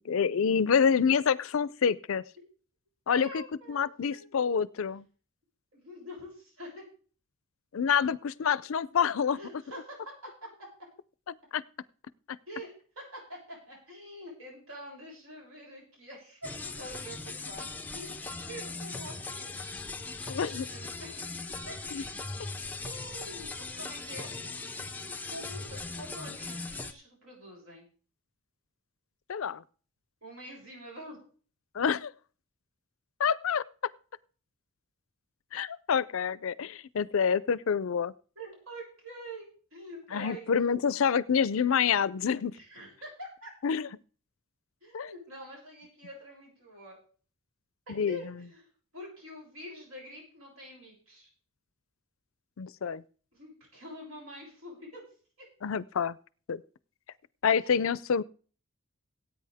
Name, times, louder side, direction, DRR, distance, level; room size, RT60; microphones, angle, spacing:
voice 1, 0.1-2.2 3.1-3.4 3.7-5.0 7.7-9.4 11.3-11.6 20.3-20.7 21.9-22.0 29.3-29.6 31.7-32.1 33.2-33.6 35.5-38.1 40.1-42.6 43.6-43.9 44.9-45.1 47.9-48.2 52.6-53.0 55.6-56.2 56.5-56.6 57.4-58.2, left 7 dB, 65° left, 20 dB, 0.4 m, -27 dB
voice 2, 3.1-4.3 5.7-6.8 9.3-10.0 10.4-10.7 12.5-18.1 18.5-19.9 20.3-21.3 21.7-22.1 22.8-24.5 25.3-27.9 30.2-31.2 38.4-40.5 42.6-43.5 44.8-47.0 48.1-48.6 48.9-51.3 53.3-55.0 55.4-55.5 57.6-57.9, equal, 75° right, -1 dB, 7.3 m, -46 dB
Bassit Mahzuz Rhythm+San'a, 16.4-26.9, left 3 dB, 10° left, 0.4 m, -39 dB
18.0 x 8.8 x 3.5 m, 0.41 s
head